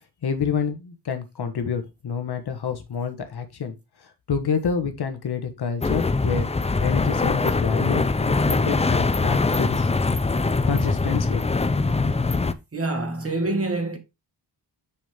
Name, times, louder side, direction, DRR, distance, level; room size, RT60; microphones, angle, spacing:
voice 1, 0.2-3.7 4.3-6.5 6.8-9.9 10.7-11.5 11.8-11.9, left 6 dB, 60° left, 1.5 m, -28 dB
sound 1, 5.8-12.5, left 3 dB, 15° left, 0.5 m, -22 dB
voice 2, 12.7-14.0, right 2 dB, 30° right, 2.0 m, -26 dB
6.4 x 6.3 x 3.6 m
wide cardioid pair, 115°, 43 cm